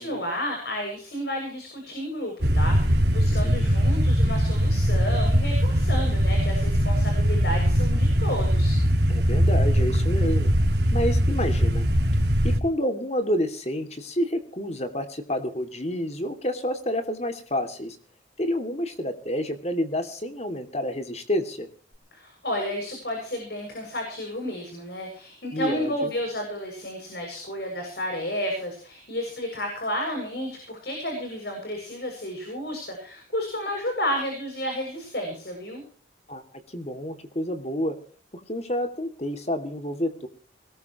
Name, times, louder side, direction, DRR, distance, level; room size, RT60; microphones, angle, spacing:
voice 1, 0.0-8.8 22.1-35.8, equal, 65° left, 2 dB, 7.1 m, -32 dB
sound 1, 2.4-12.6, equal, 70° right, 3.4 m, -21 dB
voice 2, 9.1-10.5 10.9-11.9 12.4-18.0 18.4-21.7 25.5-26.1 36.3-36.4 36.7-38.0 38.5-40.3, equal, 35° left, 7 dB, 2.6 m, -29 dB
21.5 x 19.0 x 3.1 m, 0.43 s
head